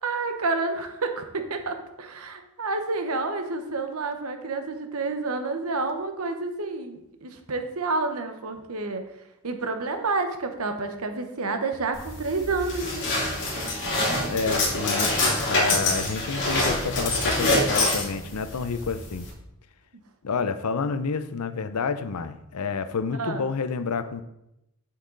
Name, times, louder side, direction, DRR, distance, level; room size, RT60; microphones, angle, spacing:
voice 1, 0.0-9.0 9.4-13.1 23.2-23.4, right 3 dB, 70° right, 6 dB, 1.0 m, -29 dB
sound 1, 11.9-19.3, left 2 dB, 55° left, 2.9 m, -26 dB
voice 2, 14.3-19.3 20.2-24.2, left 5 dB, 80° left, 12 dB, 0.6 m, -29 dB
7.5 x 7.1 x 3.9 m, 0.85 s
head